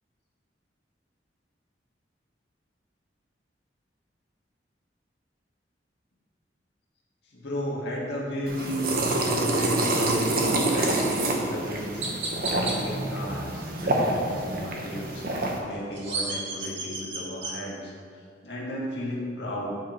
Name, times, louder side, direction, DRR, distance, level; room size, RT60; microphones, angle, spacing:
voice 1, 7.2-12.0 12.5-15.3 15.6-19.8, equal, 65° left, -4 dB, 1.7 m, -34 dB
sound 1, 8.5-15.6, right 2 dB, 50° right, 0.9 m, -27 dB
Chirp tweet, 12.0-12.8 15.7-17.5, right 3 dB, 85° right, 1.7 m, -32 dB
8.9 x 5.1 x 4.4 m, 2.2 s
head